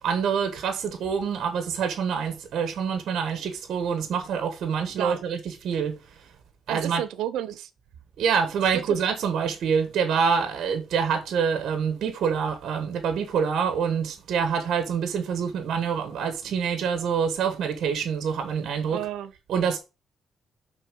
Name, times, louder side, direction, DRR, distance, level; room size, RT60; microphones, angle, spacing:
voice 1, 0.0-6.3 6.7-7.0 8.2-19.0 19.5-19.8, right 6 dB, 70° right, 1.2 m, -26 dB
voice 2, 6.7-7.7 8.7-9.0 18.9-19.3, right 11 dB, 90° right, 0.7 m, -31 dB
6.3 x 4.0 x 5.2 m
cardioid pair, 90°, 0 cm